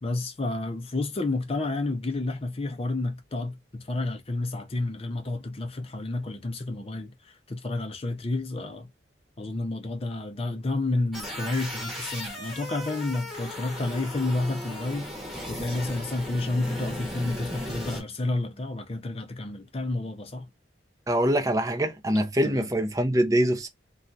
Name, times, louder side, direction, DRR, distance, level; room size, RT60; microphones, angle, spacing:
voice 1, 0.0-8.9 9.4-15.1 15.5-20.5 22.4-22.7, left 2 dB, 30° left, 0.5 m, -30 dB
sound 1, 11.1-18.0, left 1 dB, ahead, 1.0 m, -37 dB
voice 2, 21.1-23.7, right 1 dB, 20° right, 0.5 m, -24 dB
3.1 x 2.3 x 2.6 m
head